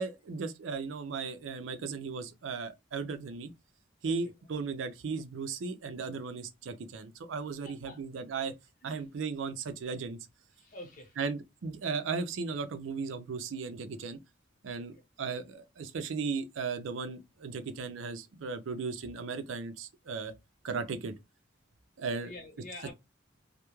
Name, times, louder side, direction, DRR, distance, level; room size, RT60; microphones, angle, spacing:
voice 1, 0.0-3.5 4.0-8.5 8.8-10.2 11.2-14.2 14.6-20.3 20.6-21.1 22.0-22.3, right 4 dB, 90° right, 0.5 m, -36 dB
voice 2, 7.6-8.0 8.8-9.0 10.6-11.2 14.8-14.9 22.2-22.9, left 2 dB, 45° left, 0.9 m, -47 dB
2.2 x 2.1 x 3.0 m
head